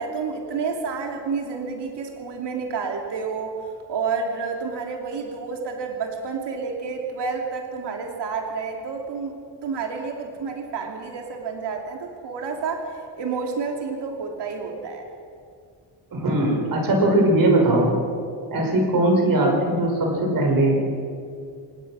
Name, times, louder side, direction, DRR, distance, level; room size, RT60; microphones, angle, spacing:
voice 1, 0.0-3.6 3.9-9.3 9.6-15.0, right 5 dB, 65° right, 2 dB, 2.8 m, -29 dB
voice 2, 16.1-17.9 18.5-20.8, right 1 dB, 50° right, 1 dB, 5.6 m, -20 dB
25.5 x 20.0 x 6.3 m, 2.3 s
wide cardioid pair, 175°, 44 cm